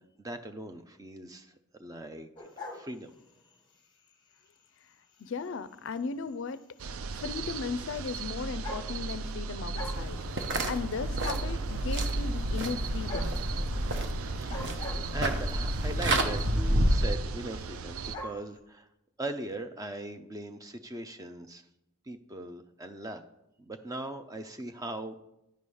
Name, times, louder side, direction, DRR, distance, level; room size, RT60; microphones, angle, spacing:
voice 1, 0.0-3.1 14.4-14.7 15.1-18.9 19.2-21.6 22.1-23.2 23.6-25.2, right 2 dB, 15° right, 8 dB, 0.5 m, -40 dB
sound 1, 2.4-3.5 4.1-4.4 5.2-5.3 5.5-5.6 5.9-6.0 7.1-7.2 8.2-8.3 8.4-9.3 9.6-10.1 10.4-10.9 11.2-11.6 13.1-13.4 14.4-15.6 16.4-16.7 17.0-17.1 17.3-17.4 17.5-18.4, left 2 dB, 20° left, 1.0 m, -41 dB
voice 2, 5.2-6.6 7.1-13.3, left 5 dB, 55° left, 14 dB, 0.4 m, -36 dB
sound 2, 6.8-18.2, right 4 dB, 70° right, 0.4 m, -37 dB
sound 3, 9.8-17.0, right 1 dB, 55° right, 0.9 m, -30 dB
10.5 x 4.9 x 5.4 m, 0.85 s
head